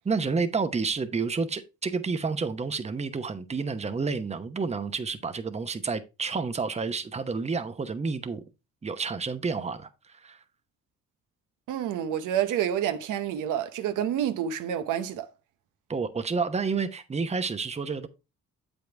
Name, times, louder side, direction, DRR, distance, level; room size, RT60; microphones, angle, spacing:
voice 1, 0.0-8.4 8.8-10.4 15.9-18.1, right 4 dB, 20° right, 0.9 m, -30 dB
voice 2, 11.7-15.3, right 10 dB, 85° right, 0.9 m, -28 dB
7.8 x 5.3 x 3.4 m
cardioid pair, 90°, 30 cm